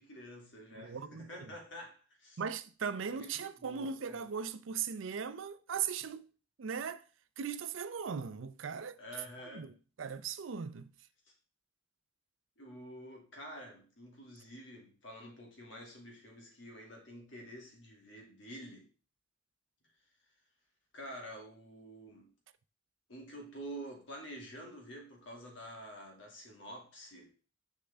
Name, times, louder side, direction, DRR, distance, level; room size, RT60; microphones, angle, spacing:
voice 1, 0.0-2.4 3.1-4.2 9.0-9.7 12.6-18.9 20.9-22.3 23.1-27.3, equal, 70° left, 2.3 m, -48 dB
voice 2, 0.8-1.5 2.4-6.3 6.6-7.0 7.4-9.0 9.5-10.9, right 6 dB, 80° right, 0.5 m, -38 dB
6.7 x 5.4 x 3.5 m
head